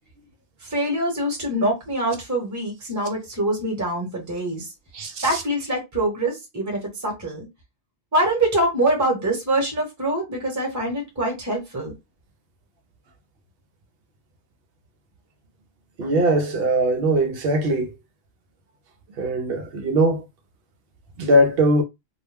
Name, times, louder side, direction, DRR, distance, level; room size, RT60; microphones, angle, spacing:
voice 1, 0.6-4.7 5.2-7.5 8.1-11.9, right 1 dB, 15° right, 1.0 m, -24 dB
voice 2, 4.9-5.4 16.0-18.0 19.2-20.2 21.2-21.8, right 1 dB, 60° right, 0.7 m, -20 dB
2.3 x 2.1 x 3.3 m
omnidirectional pair, 1.2 m